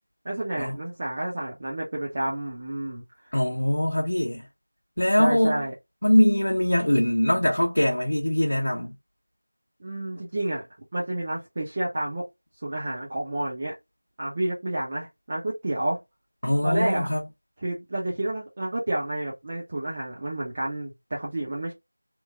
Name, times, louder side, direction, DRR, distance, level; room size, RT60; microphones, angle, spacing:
voice 1, 0.2-3.3 5.2-5.7 9.8-10.6 10.9-12.3 12.6-13.7 14.2-16.0 16.6-17.1 17.6-21.7, right 1 dB, 20° right, 0.4 m, -30 dB
voice 2, 3.3-4.4 5.0-5.6 6.0-8.9 16.4-17.2, left 1 dB, 50° left, 0.7 m, -22 dB
2.9 x 2.0 x 2.3 m
figure-of-eight pair, 175°, 0 cm